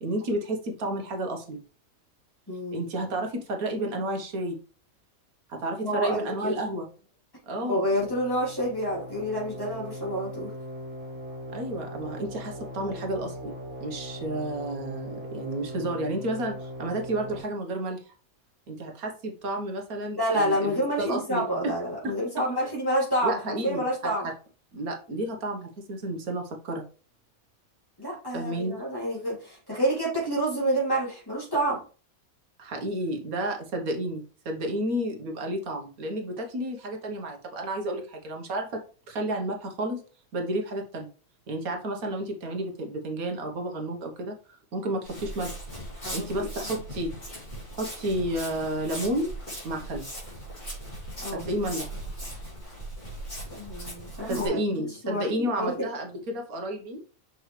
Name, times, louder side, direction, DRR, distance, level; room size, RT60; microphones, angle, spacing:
voice 1, 0.0-1.6 2.7-4.6 5.5-6.9 7.5-7.8 11.5-13.5 13.8-18.0 18.7-21.7 22.0-22.1 23.2-24.3 24.7-26.8 28.3-28.8 32.6-38.8 39.1-40.0 40.3-41.1 41.5-44.3 44.7-45.5 46.1-47.1 47.7-49.3 49.6-50.1 51.3-51.9 54.3-57.0, right 1 dB, 85° right, 3 dB, 1.7 m, -31 dB
voice 2, 2.5-2.8 5.8-6.6 7.7-10.5 20.2-24.3 28.0-31.8 46.0-46.7 51.2-51.5 53.5-55.9, equal, 15° left, -7 dB, 3.4 m, -28 dB
sound 1, 8.0-17.4, equal, 40° right, 3.0 m, -39 dB
Walk footsteps, 45.0-54.5, right 1 dB, 30° left, 3.4 m, -39 dB
6.4 x 5.5 x 3.3 m, 0.37 s
omnidirectional pair, 1.5 m